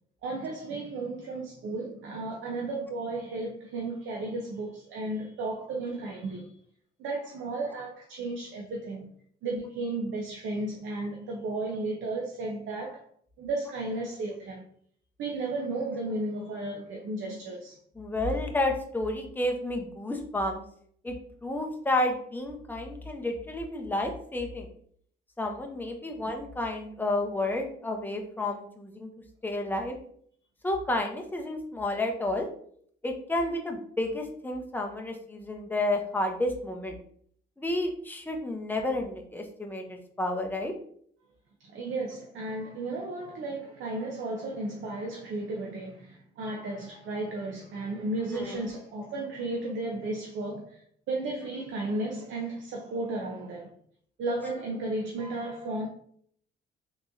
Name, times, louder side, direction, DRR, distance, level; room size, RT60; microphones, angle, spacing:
voice 1, 0.2-6.5 7.0-9.1 9.4-13.1 13.4-14.6 15.2-17.8 41.6-53.7 54.2-55.9, right 2 dB, 75° right, 0.7 m, -34 dB
voice 2, 18.0-20.6 21.0-21.1 21.4-24.7 25.4-29.1 29.4-30.0 30.6-32.5 33.0-36.9 37.6-40.7 48.3-48.7, left 1 dB, 10° left, 0.7 m, -31 dB
3.5 x 3.0 x 2.6 m
cardioid pair, 90°, 20 cm